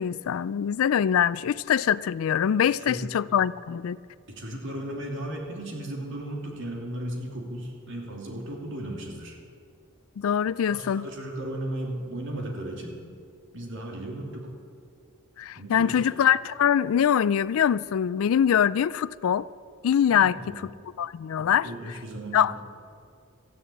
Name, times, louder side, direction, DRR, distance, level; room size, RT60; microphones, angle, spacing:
voice 1, 0.0-4.0 10.2-11.1 15.4-19.5 19.8-20.7 21.0-21.7 22.3-22.5, left 8 dB, 70° left, 0.3 m, -23 dB
voice 2, 2.8-3.1 4.3-9.4 10.7-13.0 13.5-14.5 15.6-16.0 20.1-20.6 21.4-22.5, right 1 dB, 60° right, 2.7 m, -35 dB
13.5 x 10.0 x 8.5 m
head